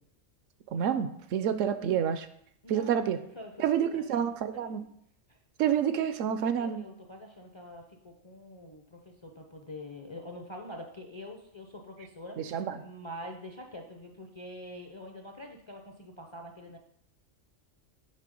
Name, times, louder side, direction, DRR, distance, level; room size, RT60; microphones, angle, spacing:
voice 1, 0.7-2.3 2.7-3.2 3.6-4.8 5.6-6.8 12.4-12.8, right 8 dB, 80° right, 11 dB, 0.9 m, -28 dB
voice 2, 2.6-4.3 4.5-4.7 5.3-5.4 6.6-16.8, left 1 dB, 35° left, 2 dB, 0.5 m, -45 dB
7.6 x 3.5 x 5.2 m, 0.71 s
omnidirectional pair, 1.3 m